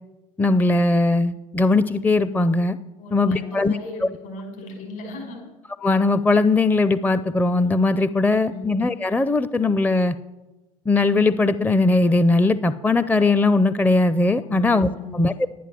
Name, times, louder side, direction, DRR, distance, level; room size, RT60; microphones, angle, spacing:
voice 1, 0.4-2.8 3.1-3.8 5.8-10.2 10.9-15.3, left 3 dB, 10° left, 14 dB, 0.5 m, -19 dB
voice 2, 3.0-5.4 8.2-8.7 14.4-15.3, left 2 dB, 70° left, 1 dB, 5.6 m, -36 dB
11.0 x 10.0 x 7.5 m, 1.1 s
hypercardioid pair, 70°, 19 cm